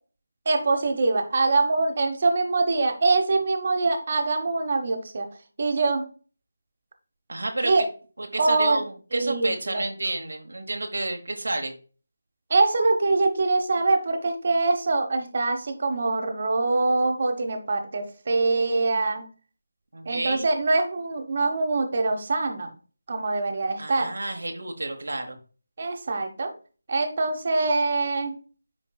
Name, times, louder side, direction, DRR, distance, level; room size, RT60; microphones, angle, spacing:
voice 1, 0.4-5.3 5.6-6.0 7.6-7.9 8.4-8.8 9.1-9.8 12.5-19.2 20.0-22.7 23.1-24.1 25.8-26.5 26.9-28.3, right 3 dB, 45° right, 5 dB, 1.2 m, -24 dB
voice 2, 7.3-7.7 8.2-11.7 19.9-20.5 23.8-25.4, right 2 dB, 75° right, 4 dB, 1.1 m, -30 dB
9.9 x 4.5 x 2.3 m, 0.38 s
figure-of-eight pair, 160°, 0 cm